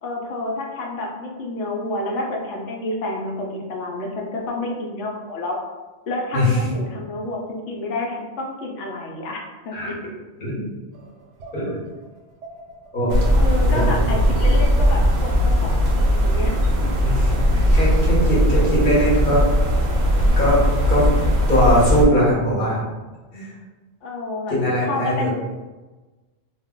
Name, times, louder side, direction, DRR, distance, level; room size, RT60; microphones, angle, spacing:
voice 1, 0.0-5.6 6.1-9.9 13.3-16.6 16.8-16.9 24.0-25.3, left 2 dB, 75° left, 0 dB, 0.9 m, -29 dB
voice 2, 6.3-6.7 9.7-9.9 10.4-10.6 11.5-11.8 12.9-13.2 13.7-13.8 17.0-19.5 20.4-20.6 20.9-21.1 21.5-22.8 23.3-23.5 24.5-25.3, equal, 45° left, -6 dB, 1.0 m, -20 dB
sound 1, 10.9-15.3, right 1 dB, 85° right, 0.9 m, -36 dB
sound 2, 13.1-22.1, equal, 60° right, 0.6 m, -18 dB
2.4 x 2.1 x 3.5 m, 1.2 s
omnidirectional pair, 1.2 m